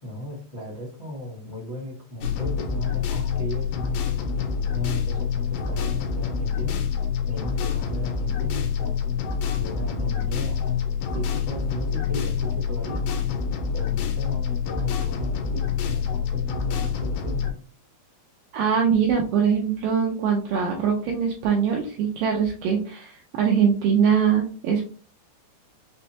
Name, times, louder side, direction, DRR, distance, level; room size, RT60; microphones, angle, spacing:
voice 1, 0.0-4.0 4.7-6.8 7.3-8.9 9.5-10.6 11.1-13.0 13.7-17.5, left 1 dB, 70° left, -7 dB, 0.4 m, -36 dB
sound 1, 2.2-17.5, left 6 dB, 90° left, 2.9 m, -26 dB
voice 2, 18.5-24.8, right 7 dB, 85° right, 1 dB, 2.0 m, -22 dB
6.2 x 2.1 x 2.8 m, 0.39 s
omnidirectional pair, 4.6 m